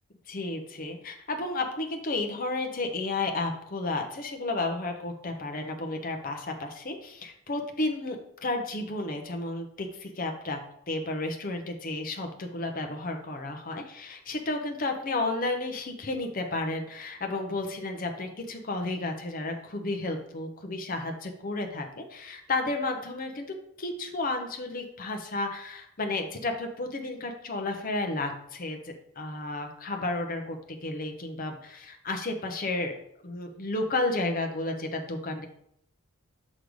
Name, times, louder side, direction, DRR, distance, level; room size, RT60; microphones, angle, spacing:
voice 1, 0.3-10.6 10.9-32.9 33.2-35.5, left 2 dB, 40° left, 4 dB, 0.8 m, -32 dB
6.2 x 3.3 x 5.1 m, 0.72 s
head